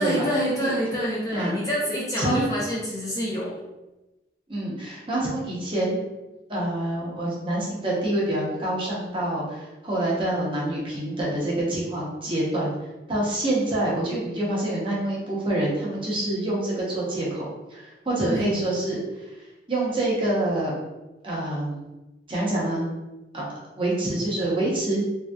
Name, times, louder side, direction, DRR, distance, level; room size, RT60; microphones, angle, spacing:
voice 1, 0.0-3.5 18.2-18.6, equal, 20° left, -5 dB, 0.5 m, -27 dB
voice 2, 4.5-6.0 6.5-12.7 13.1-19.3 19.7-20.7 21.2-21.8 22.3-22.9 23.3-23.4 23.8-25.0, right 1 dB, 30° right, -5 dB, 0.8 m, -26 dB
3.3 x 2.6 x 2.3 m, 1.0 s
head